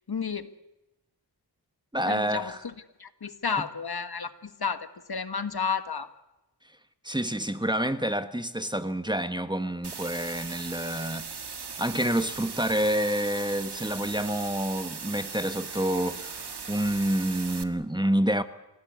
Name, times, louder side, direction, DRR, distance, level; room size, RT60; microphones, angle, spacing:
voice 1, 0.1-0.5 2.1-2.5 3.0-6.1, left 6 dB, 60° left, 1.5 m, -31 dB
voice 2, 1.9-2.6 7.0-11.2 11.8-18.4, right 1 dB, 10° right, 1.3 m, -28 dB
sound 1, 9.8-17.6, right 5 dB, 70° right, 1.8 m, -39 dB
28.0 x 17.0 x 8.2 m
wide cardioid pair, 70°, 42 cm